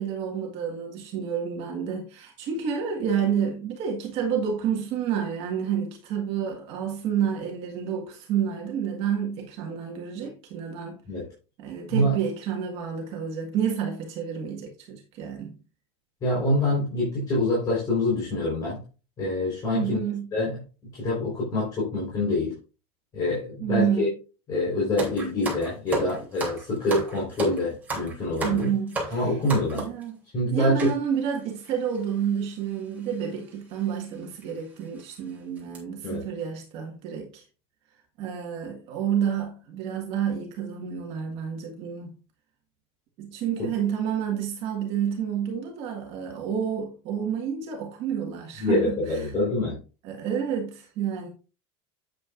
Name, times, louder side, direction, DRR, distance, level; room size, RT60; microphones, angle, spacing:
voice 1, 0.0-11.0 11.6-15.5 19.7-20.3 23.6-24.1 28.4-29.3 29.7-30.2 30.5-37.4 38.2-42.1 43.2-49.3 50.0-51.3, right 8 dB, 45° right, 1.7 m, -29 dB
voice 2, 16.2-18.8 19.2-20.0 20.3-20.6 20.9-22.5 23.1-24.1 24.5-28.7 29.1-29.9 30.3-30.9 36.0-36.2 43.6-43.7 48.6-49.8, left 1 dB, 25° left, 4.3 m, -26 dB
sound 1, 25.0-30.0 30.8-31.0 31.7-31.8 31.9-32.1 33.1-33.3 33.8-33.9 34.4-34.5 35.0-35.2 35.6-35.8, right 2 dB, 10° right, 3.1 m, -33 dB
8.8 x 8.7 x 2.5 m
cardioid pair, 175°, 14 cm